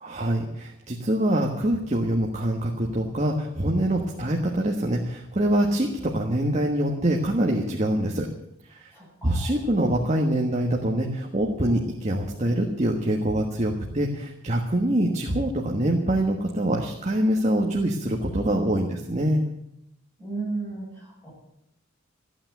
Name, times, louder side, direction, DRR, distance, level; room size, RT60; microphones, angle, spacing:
voice 1, 0.0-8.3 8.7-8.9 9.2-19.4, right 1 dB, 35° right, 1 dB, 1.4 m, -24 dB
voice 2, 8.9-9.6 20.2-21.3, right 3 dB, 10° left, -5 dB, 7.9 m, -34 dB
15.0 x 8.9 x 9.1 m, 0.82 s
head